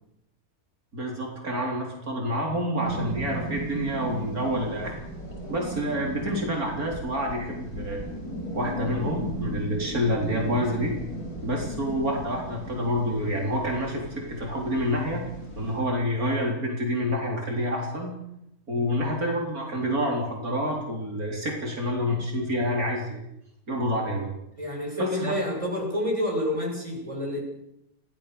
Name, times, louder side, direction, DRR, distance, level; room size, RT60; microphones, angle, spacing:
voice 1, 0.9-5.0 5.5-8.0 8.6-11.0 11.4-15.2 15.6-18.1 18.7-23.2 23.7-24.3 25.0-25.3, equal, 70° right, -1 dB, 4.4 m, -28 dB
sound 1, 2.9-15.8, equal, 85° left, 7.4 m, -37 dB
voice 2, 24.6-27.4, left 1 dB, 20° right, -1 dB, 7.4 m, -29 dB
27.5 x 17.5 x 6.9 m, 0.81 s
omnidirectional pair, 1.6 m